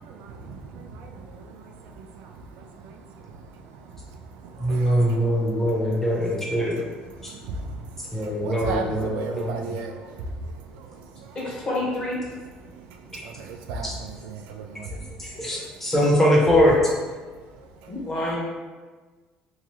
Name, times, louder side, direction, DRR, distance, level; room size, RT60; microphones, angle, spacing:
voice 1, 0.0-4.1 4.3-6.4 6.7-6.9 7.1-11.5 12.8-15.0 15.5-15.7 17.6-17.7, right 3 dB, 85° right, 3 dB, 0.3 m, -37 dB
voice 2, 4.6-6.8 8.1-9.7 13.8-13.9 15.2-16.7, equal, 10° left, -4 dB, 0.9 m, -22 dB
voice 3, 11.4-12.2 17.9-18.4, left 1 dB, 35° left, -5 dB, 1.1 m, -28 dB
3.0 x 2.3 x 3.0 m, 1.3 s
cardioid pair, 115°, 3 cm